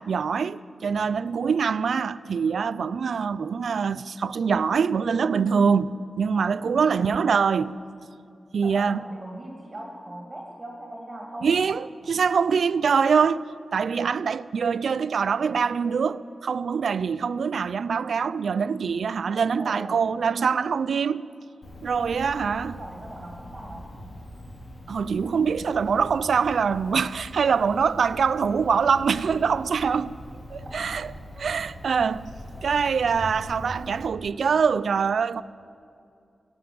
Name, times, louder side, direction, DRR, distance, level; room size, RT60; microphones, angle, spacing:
voice 1, 0.0-7.8 8.5-9.0 11.4-21.2 21.8-22.7 24.9-30.1 30.5-31.1 31.4-32.3 32.6-35.4, right 6 dB, 80° right, 0.3 m, -24 dB
voice 2, 6.8-7.2 8.5-11.5 19.6-20.0 22.2-24.1 30.6-31.0 31.3-31.6, right 1 dB, 35° right, 2.3 m, -40 dB
Cricket, 21.6-34.1, left 1 dB, 60° left, 3.2 m, -42 dB
17.0 x 7.9 x 9.3 m
cardioid pair, 70°, 0 cm